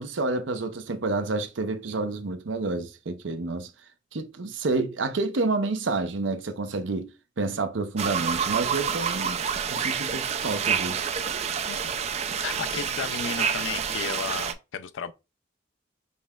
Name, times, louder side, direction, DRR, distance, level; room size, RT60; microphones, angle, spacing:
voice 1, 0.0-3.7 4.1-9.4 9.7-11.1, right 3 dB, 80° right, 0.6 m, -29 dB
sound 1, 8.0-14.5, right 7 dB, 35° right, 0.3 m, -28 dB
voice 2, 12.4-15.1, left 7 dB, 90° left, 0.4 m, -34 dB
5.3 x 3.1 x 2.3 m
head